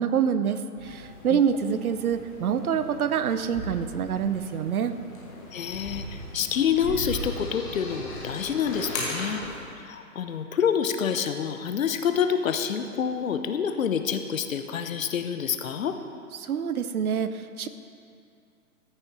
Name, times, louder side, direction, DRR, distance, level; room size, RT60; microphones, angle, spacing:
voice 1, 0.0-4.9 16.4-17.7, right 8 dB, 70° right, 11 dB, 0.7 m, -26 dB
sound 1, 0.8-9.6, left 1 dB, 15° left, 0.6 m, -38 dB
voice 2, 5.5-9.4 9.8-15.9, left 7 dB, 60° left, 8 dB, 0.7 m, -27 dB
14.0 x 6.3 x 3.1 m, 2.5 s
hypercardioid pair, 140°, 46 cm